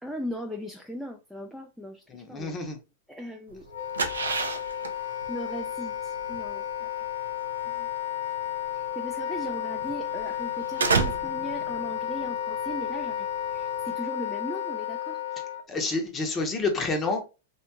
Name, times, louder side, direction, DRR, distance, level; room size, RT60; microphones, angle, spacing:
voice 1, 0.0-2.5 3.1-3.7 5.3-6.9 7.6-7.9 8.7-15.2, equal, ahead, 0.4 m, -38 dB
voice 2, 2.1-2.8 15.7-17.2, left 3 dB, 25° left, 0.7 m, -28 dB
sound 1, 3.5-13.9, right 5 dB, 90° right, 0.4 m, -32 dB
Wind instrument woodwind instrument, 3.7-15.6, left 10 dB, 75° left, 0.6 m, -32 dB
2.7 x 2.2 x 2.8 m
hypercardioid pair, 115°, 0 cm